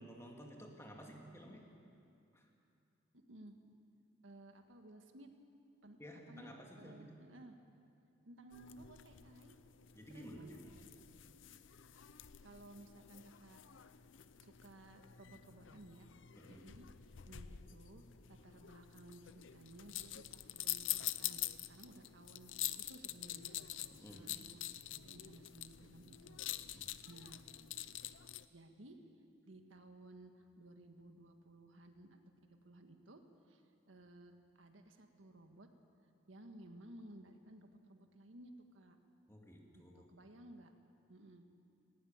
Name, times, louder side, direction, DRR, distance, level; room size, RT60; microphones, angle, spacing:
voice 1, 0.0-1.7 2.3-2.5 6.0-7.3 9.9-10.8 16.4-16.8 23.9-24.3 26.7-27.0 28.0-28.1 39.3-40.1, equal, 15° left, 1 dB, 2.3 m, -54 dB
voice 2, 3.1-3.6 4.2-5.3 5.8-6.0 6.3-7.6 8.3-9.6 10.1-10.9 12.4-13.9 14.4-16.1 16.4-16.9 17.2-22.5 22.8-27.4 28.5-29.0 29.5-33.2 33.5-35.7 36.3-39.0 39.7-40.7 41.1-41.4, right 1 dB, 90° right, 5 dB, 1.7 m, -57 dB
sound 1, 8.5-28.5, left 13 dB, 80° left, 0.6 m, -46 dB
18.5 x 17.5 x 8.9 m, 2.5 s
head